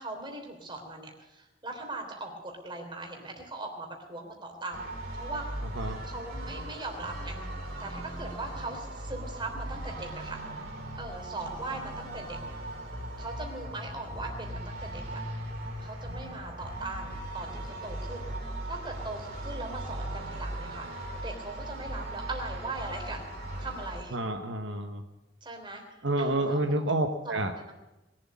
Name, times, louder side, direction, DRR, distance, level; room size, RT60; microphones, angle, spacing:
voice 1, 0.0-5.4 6.0-7.4 7.8-10.4 11.0-12.4 13.2-15.2 15.8-18.3 18.6-20.9 21.2-23.3 23.6-24.2 25.4-25.8 26.2-26.6 27.2-27.7, right 2 dB, 25° right, 2 dB, 3.3 m, -40 dB
sound 1, 4.7-24.0, right 1 dB, 55° right, 2.8 m, -38 dB
voice 2, 24.1-25.0 26.0-27.5, right 1 dB, 70° right, 5 dB, 1.1 m, -29 dB
21.0 x 7.9 x 8.5 m, 0.95 s
head